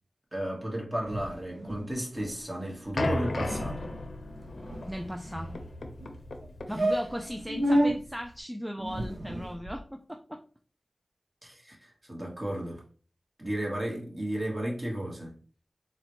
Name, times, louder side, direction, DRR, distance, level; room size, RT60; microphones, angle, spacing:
voice 1, 0.3-3.8 6.8-6.9 11.4-12.8 13.4-15.3, right 1 dB, 25° right, 1.2 m, -34 dB
sound 1, 1.0-1.9 2.2-2.3 2.6-2.8 3.1-3.2 3.4-3.7 4.3-5.3 6.0-6.1 6.4-6.5 6.8-7.9 8.8-9.8, equal, 85° right, 0.5 m, -30 dB
sound 2, 3.0-8.4, left 2 dB, 80° left, 0.5 m, -36 dB
voice 2, 4.9-5.6 6.7-10.4, equal, 5° right, 0.3 m, -37 dB
4.0 x 2.1 x 2.9 m
wide cardioid pair, 70°, 0 cm